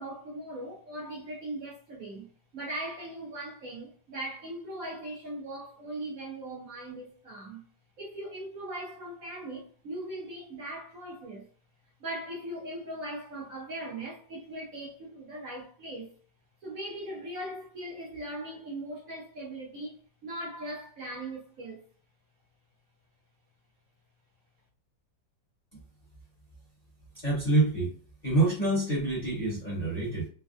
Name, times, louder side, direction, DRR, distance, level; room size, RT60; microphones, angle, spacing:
voice 1, 0.0-7.7 8.0-11.5 12.0-16.1 16.6-21.8, right 1 dB, 55° right, 1.1 m, -39 dB
voice 2, 27.2-27.9 28.2-30.3, right 2 dB, 30° left, 0.8 m, -26 dB
3.3 x 2.2 x 2.4 m
omnidirectional pair, 2.0 m